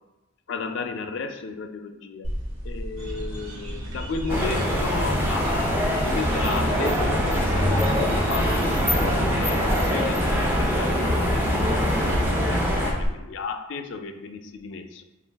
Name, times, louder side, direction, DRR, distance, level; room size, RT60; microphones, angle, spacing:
voice 1, 0.5-2.3 2.6-15.0, left 4 dB, 60° left, 7 dB, 0.3 m, -34 dB
sound 1, 2.2-13.1, equal, 60° right, 1.2 m, -32 dB
sound 2, 3.0-9.3, right 2 dB, 80° right, 0.7 m, -41 dB
sound 3, 4.3-12.9, equal, 10° right, 0.4 m, -23 dB
4.5 x 2.3 x 3.3 m, 1.0 s
head